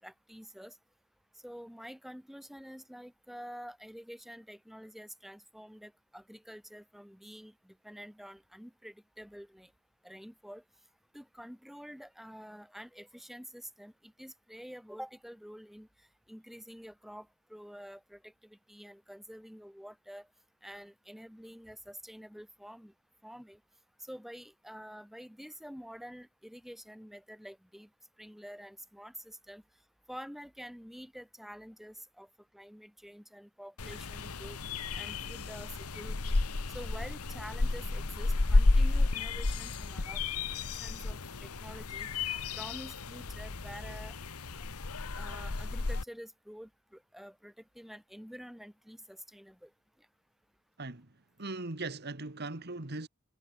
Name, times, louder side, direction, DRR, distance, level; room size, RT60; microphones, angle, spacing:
voice 1, 0.0-0.8 1.4-9.7 10.0-10.6 11.1-15.9 16.3-20.3 20.6-22.9 23.2-23.6 24.0-27.9 28.2-29.6 30.1-32.3 32.5-34.6 35.0-36.4 36.7-40.2 40.7-42.1 42.5-44.2 44.5-44.6 45.1-49.7, equal, ahead, 4.2 m, -48 dB
sound 1, 33.8-46.0, left 3 dB, 80° left, 1.2 m, -32 dB
voice 2, 50.8-51.1 51.4-53.1, right 2 dB, 45° right, 1.7 m, -39 dB
head